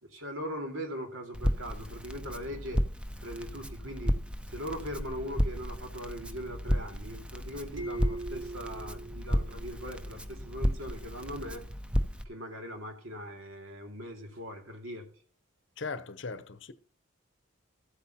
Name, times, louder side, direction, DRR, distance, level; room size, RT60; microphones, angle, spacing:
voice 1, 0.0-2.8 3.2-4.2 4.5-11.6 12.2-15.1, equal, 80° right, 2.4 m, -40 dB
Crackle, 1.3-12.2, equal, 5° right, 0.5 m, -33 dB
sound 1, 7.8-10.3, right 2 dB, 55° right, 1.8 m, -41 dB
voice 2, 15.8-16.7, left 4 dB, 60° left, 0.7 m, -38 dB
14.0 x 8.4 x 2.9 m
head